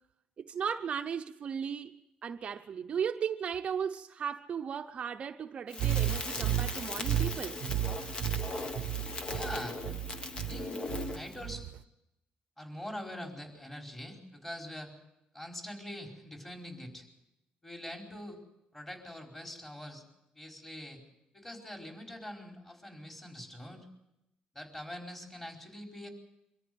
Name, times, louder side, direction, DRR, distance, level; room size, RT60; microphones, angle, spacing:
voice 1, 0.4-7.6, right 7 dB, 45° right, 0.8 m, -36 dB
Crackle, 5.7-11.4, left 3 dB, 35° left, 1.5 m, -39 dB
sound 1, 5.8-11.8, right 12 dB, 85° right, 0.8 m, -33 dB
voice 2, 9.3-9.8 10.4-10.8 11.1-11.7 12.6-14.9 15.3-17.0 17.6-18.4 18.7-20.0 20.3-21.0 21.3-23.9 24.5-26.1, left 1 dB, 15° left, 4.8 m, -43 dB
24.0 x 14.0 x 9.5 m
cardioid pair, 135°, 3 cm